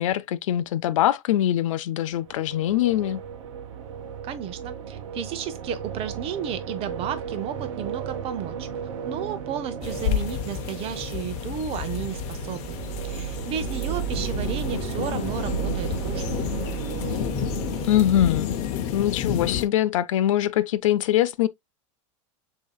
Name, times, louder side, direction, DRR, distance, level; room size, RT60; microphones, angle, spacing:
voice 1, 0.0-3.2 17.8-18.5 18.9-21.5, left 12 dB, 75° left, 0.4 m, -23 dB
sound 1, 2.1-19.1, right 9 dB, 70° right, 0.9 m, -34 dB
voice 2, 4.2-8.7 9.0-12.8 13.0-16.3, right 8 dB, 35° right, 0.8 m, -33 dB
sound 2, 9.8-19.7, left 10 dB, 45° left, 0.7 m, -30 dB
6.3 x 2.8 x 2.3 m
supercardioid pair, 130°, 17 cm